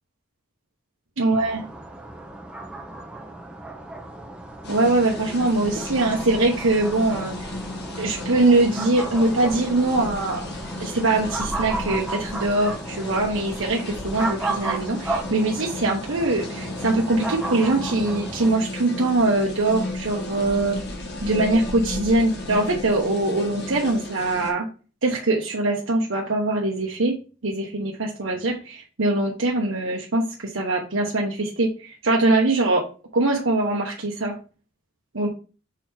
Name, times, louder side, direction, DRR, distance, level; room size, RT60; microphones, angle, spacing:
voice 1, 1.2-1.7 4.7-7.3 8.0-10.4 10.8-20.8 21.2-24.7 25.0-27.1 27.4-32.8 33.1-34.3 35.1-35.3, right 2 dB, 75° right, -2 dB, 1.1 m, -22 dB
sound 1, 1.3-18.5, right 2 dB, 5° right, 1.0 m, -34 dB
sound 2, 4.6-24.5, left 2 dB, 55° left, 1.4 m, -34 dB
6.1 x 3.7 x 4.4 m, 0.35 s
head